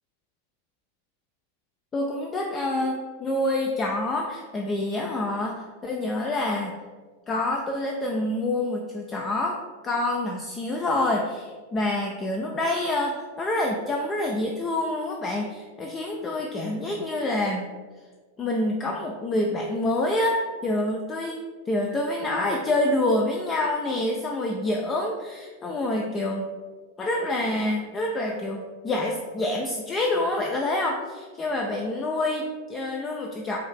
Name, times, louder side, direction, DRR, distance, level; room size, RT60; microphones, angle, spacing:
voice 1, 1.9-6.7 7.3-9.6 9.8-17.7 18.4-26.5 27.0-33.6, left 1 dB, 20° left, 1 dB, 0.4 m, -27 dB
4.6 x 2.6 x 3.4 m, 1.5 s
figure-of-eight pair, 90°, 0 cm